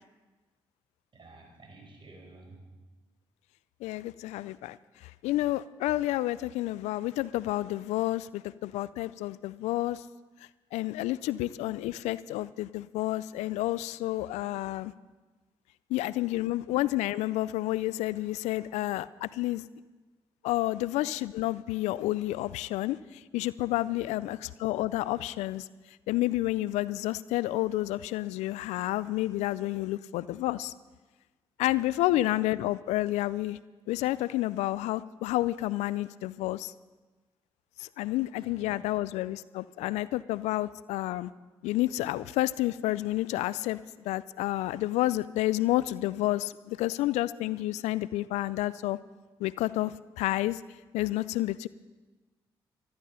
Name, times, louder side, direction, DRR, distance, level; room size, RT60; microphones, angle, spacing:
voice 1, 1.1-2.7 32.1-32.2 38.4-38.7, right 2 dB, 45° right, 2 dB, 5.0 m, -52 dB
voice 2, 3.8-4.8 5.2-10.0 10.7-14.9 15.9-19.6 20.4-23.0 23.3-25.7 26.1-30.7 31.6-33.6 33.9-36.7 37.8-41.3 41.6-43.8 44.1-49.0 49.4-50.6 50.9-51.7, left 16 dB, 85° left, 19 dB, 0.4 m, -30 dB
14.5 x 13.5 x 5.6 m, 1.2 s
hypercardioid pair, 45°, 11 cm